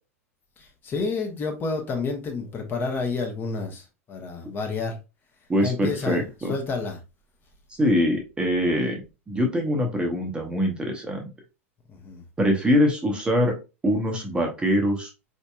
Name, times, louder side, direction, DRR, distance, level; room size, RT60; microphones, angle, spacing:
voice 1, 0.6-5.0 5.6-6.2 6.5-7.0 11.9-12.2, left 4 dB, 25° left, 0.9 m, -29 dB
voice 2, 5.5-6.5 7.8-11.3 12.4-13.5 13.8-15.1, equal, 15° right, 0.8 m, -23 dB
4.3 x 2.8 x 2.3 m
figure-of-eight pair, 85°, 8 cm